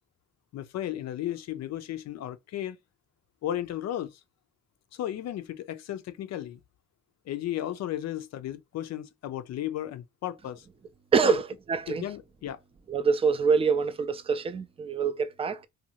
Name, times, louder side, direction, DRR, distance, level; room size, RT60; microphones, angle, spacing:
voice 1, 0.5-2.8 3.4-4.2 4.9-6.6 7.3-10.7 11.2-11.4 11.9-12.6, left 12 dB, 60° left, 0.5 m, -34 dB
voice 2, 11.1-12.1 12.9-15.7, right 5 dB, 20° right, 0.3 m, -25 dB
2.7 x 2.4 x 2.8 m
cardioid pair, 90°, 30 cm